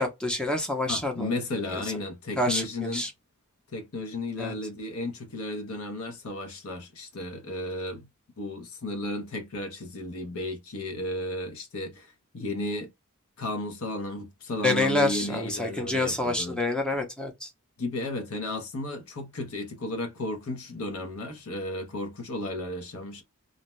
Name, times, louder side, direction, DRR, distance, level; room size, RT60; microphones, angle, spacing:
voice 1, 0.0-1.4 1.7-1.8 2.4-3.1 4.4-4.5 14.6-17.5, left 2 dB, 5° left, 0.6 m, -27 dB
voice 2, 0.9-3.1 3.7-8.1 8.4-12.9 13.4-16.6 17.8-23.2, left 2 dB, 75° left, 0.8 m, -34 dB
2.6 x 2.1 x 3.0 m
head